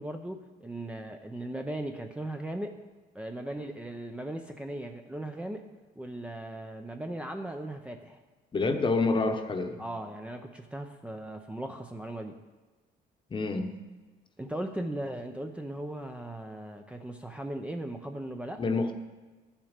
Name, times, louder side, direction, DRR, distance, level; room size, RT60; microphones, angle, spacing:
voice 1, 0.0-2.8 3.1-5.6 6.0-8.2 9.8-12.3 14.4-18.6, right 1 dB, 5° right, 4 dB, 0.6 m, -38 dB
voice 2, 8.5-9.8 13.3-13.7 18.6-18.9, left 3 dB, 30° left, 7 dB, 1.0 m, -27 dB
11.5 x 7.3 x 5.1 m, 1.3 s
cardioid pair, 110°, 17 cm